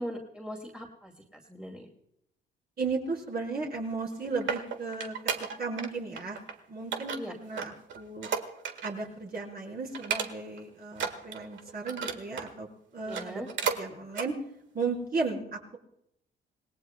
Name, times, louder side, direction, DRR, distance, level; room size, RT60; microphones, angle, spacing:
voice 1, 0.0-1.9 7.2-7.3 13.1-13.5, equal, 5° right, 1 dB, 2.3 m, -40 dB
voice 2, 2.8-5.1 5.6-6.4 6.7-8.3 8.8-12.7 12.9-13.4 13.7-14.4 14.7-15.8, right 4 dB, 50° right, -1 dB, 4.5 m, -35 dB
sound 1, 3.9-5.9 6.2-6.5 6.9-9.1 9.4-9.6 9.9-10.6 10.9-12.5 13.0-13.8 14.1-14.3 14.8-14.9, right 6 dB, 70° right, 1.5 m, -34 dB
26.5 x 18.5 x 2.2 m, 0.77 s
cardioid pair, 90°, 20 cm